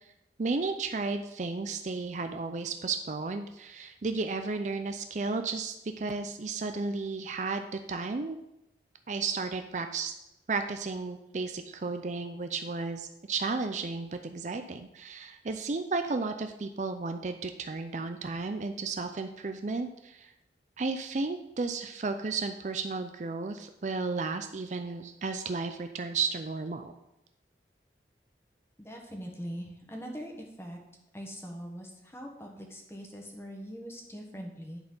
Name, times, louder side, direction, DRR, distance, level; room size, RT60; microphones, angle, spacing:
voice 1, 0.4-8.4 9.1-10.1 10.5-20.3 20.8-26.9, right 4 dB, 40° right, 7 dB, 0.5 m, -33 dB
voice 2, 28.8-30.8 31.1-34.8, equal, 15° left, 1 dB, 1.3 m, -42 dB
10.5 x 4.3 x 5.5 m, 0.88 s
head